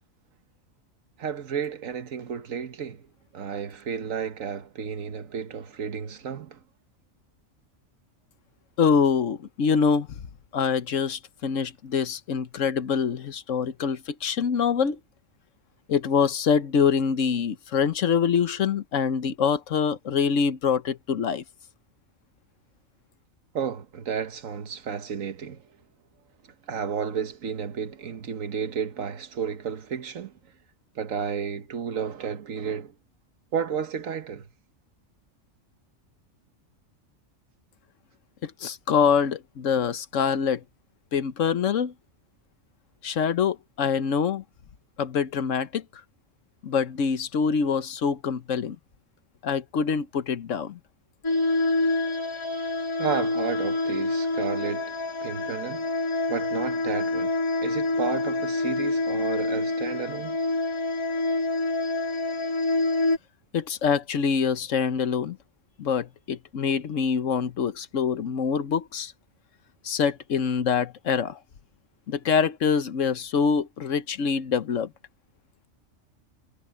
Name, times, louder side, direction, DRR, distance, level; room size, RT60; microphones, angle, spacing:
voice 1, 1.2-3.0 3.3-6.6 23.5-25.6 26.7-30.3 30.9-32.9 33.5-34.5 53.0-54.9 55.2-56.0 56.3-57.3 57.6-60.4, right 7 dB, 90° right, 1.6 m, -32 dB
voice 2, 8.8-10.1 10.5-15.0 15.9-21.4 38.4-40.6 41.1-41.9 43.0-44.4 45.0-45.8 46.6-48.8 49.4-50.8 63.5-65.4 65.8-69.1 69.8-71.4 72.1-74.9, left 6 dB, 75° left, 1.3 m, -25 dB
sound 1, 51.2-63.2, left 2 dB, 20° left, 2.3 m, -27 dB
omnidirectional pair, 1.3 m